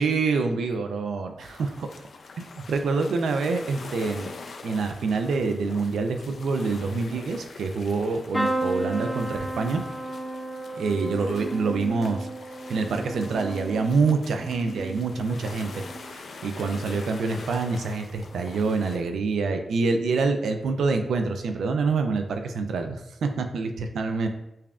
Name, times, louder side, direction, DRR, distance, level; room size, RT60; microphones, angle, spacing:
voice 1, 0.0-1.9 2.7-4.3 4.6-9.8 10.8-12.3 12.7-24.3, right 4 dB, 90° right, 6 dB, 0.3 m, -26 dB
sound 1, 1.4-19.0, left 4 dB, 70° left, 0.4 m, -44 dB
sound 2, 8.3-16.2 16.6-17.2 18.4-18.6 18.9-19.0, right 1 dB, 10° left, 0.5 m, -34 dB
5.4 x 2.3 x 2.4 m, 0.86 s
cardioid pair, 65°, 0 cm